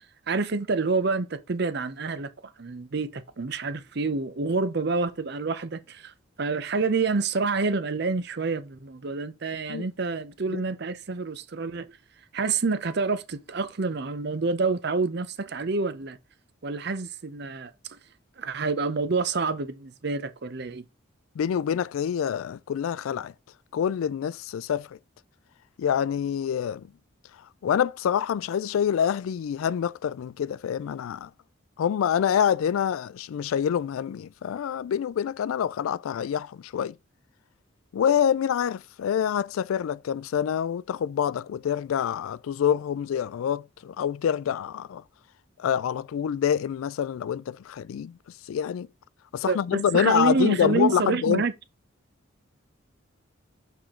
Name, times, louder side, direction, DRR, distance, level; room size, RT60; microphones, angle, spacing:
voice 1, 0.3-11.9 12.3-16.2 16.6-17.7 18.4-20.8 49.5-51.5, right 4 dB, 55° right, 0.6 m, -28 dB
voice 2, 21.4-23.3 23.7-25.0 25.8-26.9 27.6-31.3 31.8-37.0 37.9-45.0 45.6-48.2 48.5-48.9 49.3-51.4, left 8 dB, 85° left, 0.3 m, -26 dB
7.0 x 4.5 x 3.6 m
head